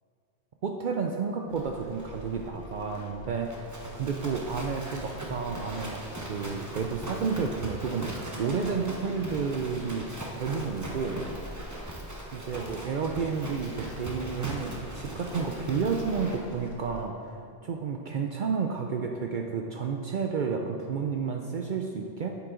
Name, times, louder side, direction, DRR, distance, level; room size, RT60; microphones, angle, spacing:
voice 1, 0.6-3.5 3.9-10.1 10.4-11.2 12.3-22.4, right 5 dB, 60° right, 3 dB, 0.6 m, -31 dB
Livestock farm animals working animals, 1.5-17.0, right 1 dB, 20° right, 0.9 m, -40 dB
8.5 x 7.8 x 3.7 m, 2.4 s
omnidirectional pair, 1.1 m